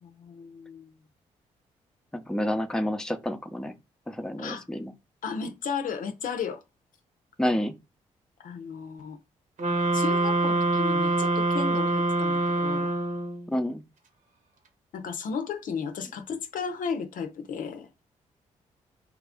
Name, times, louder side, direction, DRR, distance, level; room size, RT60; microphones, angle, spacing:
voice 1, 0.0-0.9 4.4-4.7 5.2-6.6 8.4-9.2 9.9-12.9 14.9-17.9, left 6 dB, 65° left, 0.6 m, -34 dB
voice 2, 2.1-3.7 4.1-4.9 7.4-7.7 13.5-13.8, left 1 dB, 5° left, 0.6 m, -29 dB
sound 1, 9.6-13.5, right 2 dB, 65° right, 1.2 m, -25 dB
3.1 x 2.5 x 3.5 m
supercardioid pair, 55°, 15 cm